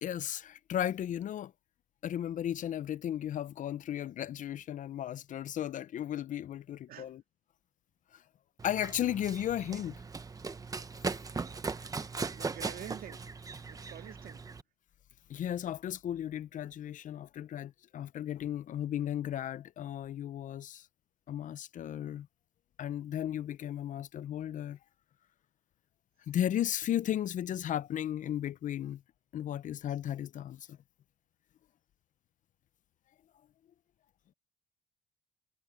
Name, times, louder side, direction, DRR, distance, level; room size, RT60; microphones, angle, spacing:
voice 1, 0.0-1.5 2.0-7.2 8.1-8.2 8.6-10.0 15.3-20.9 21.3-22.3 22.8-24.8 26.3-29.0 29.3-30.8, left 11 dB, 50° left, 0.6 m, -35 dB
Run, 8.6-14.6, right 4 dB, 20° right, 1.0 m, -39 dB
voice 2, 12.3-13.3 13.7-14.5, right 11 dB, 60° right, 2.2 m, -47 dB
cardioid pair, 110°, 17 cm